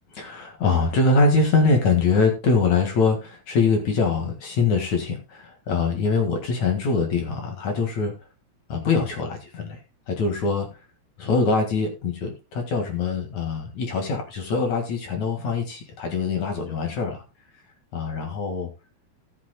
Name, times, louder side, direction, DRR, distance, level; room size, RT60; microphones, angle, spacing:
voice 1, 0.1-8.1 8.7-9.8 10.1-10.8 11.2-17.2 17.9-18.7, left 4 dB, 55° left, 3 dB, 3.0 m, -23 dB
18.5 x 8.2 x 2.2 m, 0.28 s
omnidirectional pair, 4.1 m